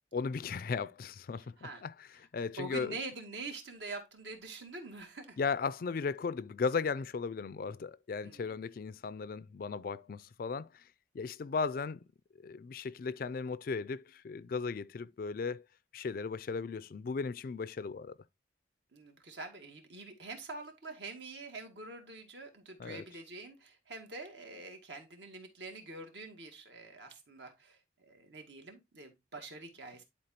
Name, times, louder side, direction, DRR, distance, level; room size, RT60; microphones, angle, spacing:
voice 1, 0.1-3.0 5.4-10.8 11.1-12.0 12.4-15.6 15.9-18.2 22.8-23.1, left 5 dB, 50° left, 0.3 m, -36 dB
voice 2, 2.6-5.4 8.2-8.6 18.9-27.8 28.1-30.0, right 3 dB, 70° right, 1.9 m, -45 dB
11.0 x 4.4 x 2.9 m
head